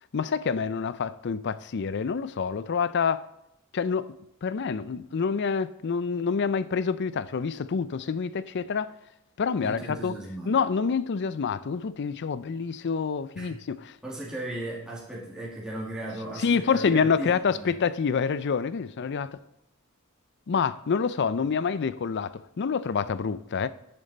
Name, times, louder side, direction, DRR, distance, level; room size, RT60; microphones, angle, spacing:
voice 1, 0.1-3.2 3.7-8.9 9.4-10.1 10.5-14.0 16.4-19.4 20.5-23.7, left 5 dB, 55° left, 0.5 m, -27 dB
voice 2, 9.6-10.6 13.4-13.6 14.0-17.7, right 1 dB, 5° right, 2.2 m, -36 dB
10.5 x 6.8 x 4.1 m
head